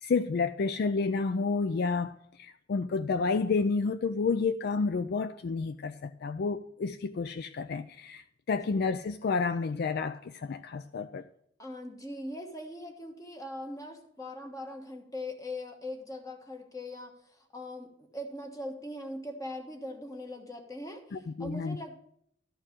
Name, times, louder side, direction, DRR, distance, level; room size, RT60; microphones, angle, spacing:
voice 1, 0.0-2.1 2.4-11.2 21.1-21.8, left 4 dB, 55° left, 0.4 m, -30 dB
voice 2, 11.6-22.0, left 1 dB, 20° left, 1.3 m, -41 dB
13.0 x 4.5 x 7.3 m
head